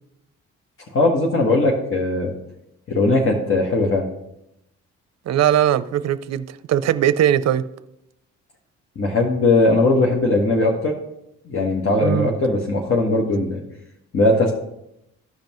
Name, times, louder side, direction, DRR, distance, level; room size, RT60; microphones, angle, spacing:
voice 1, 0.9-2.3 2.9-4.1 8.9-10.9 11.4-13.6 14.1-14.5, left 2 dB, 45° left, 1.5 m, -19 dB
voice 2, 5.3-7.6 11.9-12.3, right 10 dB, 60° right, 0.5 m, -20 dB
14.5 x 5.3 x 3.0 m
cardioid pair, 90°, 30 cm